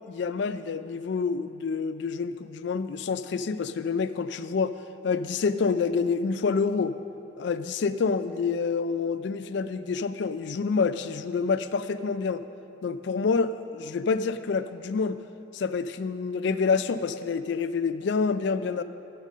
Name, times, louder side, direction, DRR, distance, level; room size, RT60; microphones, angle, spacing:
voice 1, 0.1-4.7 5.0-6.9 7.4-12.4 12.8-15.2 15.5-18.8, left 5 dB, 60° left, 13 dB, 0.3 m, -27 dB
12.0 x 5.3 x 6.2 m, 2.7 s
head